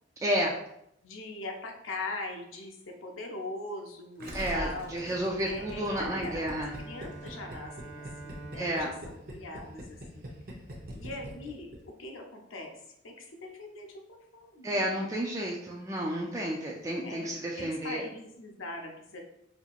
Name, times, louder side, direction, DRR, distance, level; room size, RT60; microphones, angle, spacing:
voice 1, 0.2-0.5 4.3-6.7 8.6-8.9 14.6-18.0, equal, 15° right, -2 dB, 0.3 m, -31 dB
voice 2, 1.0-4.9 5.4-8.9 9.3-10.3 10.9-11.7 12.0-14.9 17.0-17.3 17.5-19.2, left 2 dB, 85° left, 2 dB, 0.7 m, -41 dB
Gurgling, 4.2-11.8 12.0-12.1, equal, 50° right, 0.7 m, -42 dB
Bowed string instrument, 5.5-10.4, right 3 dB, 70° right, 1.0 m, -48 dB
4.3 x 2.8 x 2.4 m, 0.77 s
head